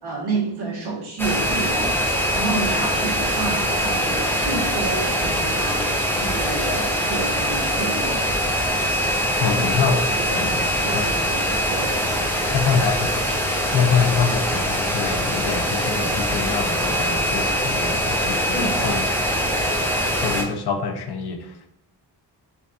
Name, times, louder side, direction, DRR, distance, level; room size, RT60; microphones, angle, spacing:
voice 1, 0.0-8.2 9.3-9.5 10.2-12.0 18.3-19.0, right 3 dB, 65° right, -4 dB, 1.3 m, -30 dB
sound 1, 1.2-20.4, equal, 5° left, 0.5 m, -23 dB
voice 2, 9.4-10.6 10.9-11.1 12.5-13.2 13.7-19.0 20.2-21.7, left 5 dB, 65° left, 6 dB, 0.6 m, -25 dB
5.1 x 2.4 x 2.4 m, 0.76 s
wide cardioid pair, 110°, 42 cm